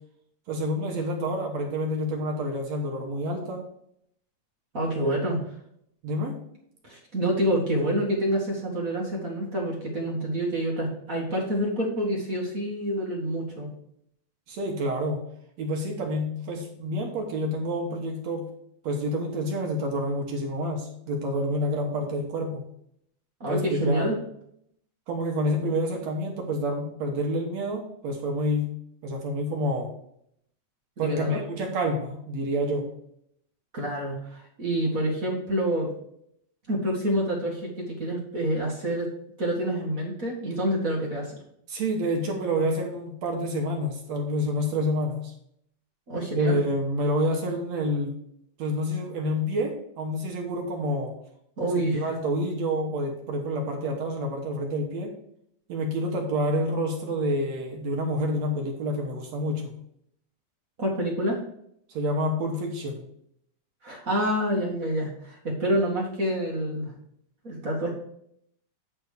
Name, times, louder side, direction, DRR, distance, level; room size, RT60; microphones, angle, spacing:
voice 1, 0.5-3.6 5.0-5.2 6.0-6.4 14.5-15.2 15.6-18.5 18.8-22.6 23.5-24.1 25.1-28.7 29.0-29.9 31.0-32.9 41.7-45.3 46.4-48.1 48.6-51.1 51.8-55.1 55.7-59.8 61.9-63.1, equal, 60° right, 1 dB, 2.0 m, -28 dB
voice 2, 4.7-5.4 6.8-13.7 23.4-24.2 31.0-31.4 33.7-35.9 36.7-39.1 39.4-41.4 46.1-46.5 51.6-52.1 60.8-61.4 63.8-66.9 67.4-67.9, equal, 40° right, -2 dB, 1.2 m, -27 dB
9.8 x 3.6 x 6.6 m, 0.71 s
omnidirectional pair, 3.9 m